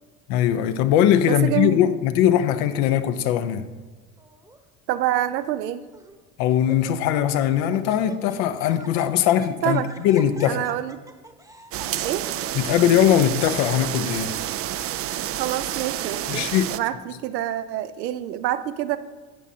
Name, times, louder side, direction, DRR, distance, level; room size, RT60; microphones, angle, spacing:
voice 1, 0.3-3.7 6.4-10.7 12.5-14.4 16.3-16.7, left 10 dB, 65° left, 0.9 m, -20 dB
voice 2, 1.3-1.9 4.9-5.8 9.6-9.9 10.5-11.0 12.0-12.3 15.4-19.0, right 12 dB, 85° right, 0.7 m, -27 dB
Laughter, 4.2-4.6 5.3-5.4 5.9-6.2 6.5-7.2 7.5-12.5, right 2 dB, 5° right, 1.0 m, -43 dB
sound 1, 11.7-16.8, right 12 dB, 30° right, 0.4 m, -29 dB
17.0 x 6.0 x 2.8 m
hypercardioid pair, 75°, 49 cm